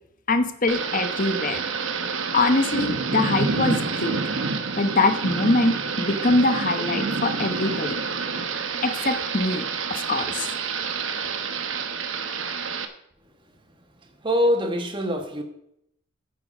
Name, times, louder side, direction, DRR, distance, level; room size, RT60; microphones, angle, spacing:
voice 1, 0.3-1.6 2.3-4.2 4.8-8.0 8.8-10.5, left 2 dB, 40° left, 9 dB, 1.0 m, -23 dB
Thunder / Rain, 0.7-12.9, right 4 dB, 75° right, 1.0 m, -28 dB
voice 2, 14.0-15.4, equal, 25° right, 5 dB, 1.4 m, -24 dB
9.7 x 8.3 x 5.5 m, 0.74 s
head